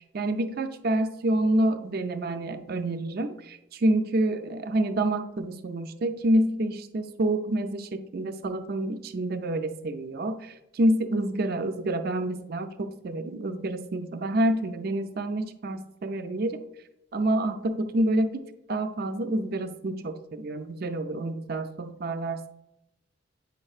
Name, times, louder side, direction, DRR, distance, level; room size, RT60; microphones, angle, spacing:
voice 1, 0.1-16.6 17.1-22.6, right 1 dB, 50° right, 9 dB, 0.4 m, -28 dB
8.0 x 5.4 x 2.4 m, 0.85 s
head